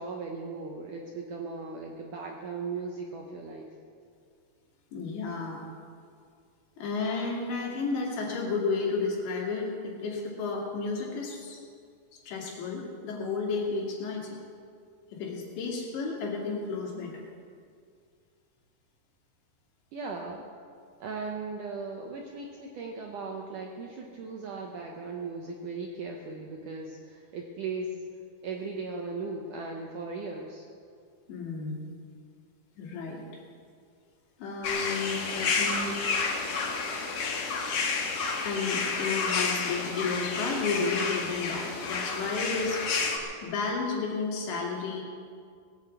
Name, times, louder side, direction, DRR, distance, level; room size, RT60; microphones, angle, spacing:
voice 1, 0.0-3.7 19.9-20.4 21.0-28.0 28.4-30.6, right 4 dB, 75° right, 1 dB, 1.9 m, -37 dB
voice 2, 4.9-5.7 6.8-11.6 12.1-14.4 15.1-17.1 31.3-31.9 32.8-33.2 34.4-36.0 38.4-42.8 43.4-45.0, left 4 dB, 85° left, -2 dB, 4.8 m, -32 dB
sound 1, 34.6-43.2, left 4 dB, 60° left, 2.2 m, -30 dB
19.5 x 8.2 x 8.1 m, 2.2 s
omnidirectional pair, 5.0 m